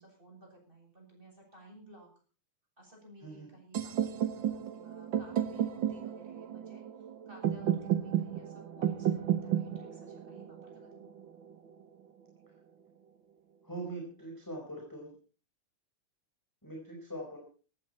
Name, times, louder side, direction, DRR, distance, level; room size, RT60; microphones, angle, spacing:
voice 1, 0.0-2.1 2.8-11.1, right 1 dB, 15° right, 0 dB, 8.1 m, -56 dB
sound 1, 3.7-11.7, right 11 dB, 55° right, 1.4 m, -33 dB
voice 2, 13.6-15.1 16.6-17.4, right 2 dB, 5° left, 0 dB, 4.5 m, -42 dB
18.0 x 15.5 x 4.4 m, 0.39 s
omnidirectional pair, 3.6 m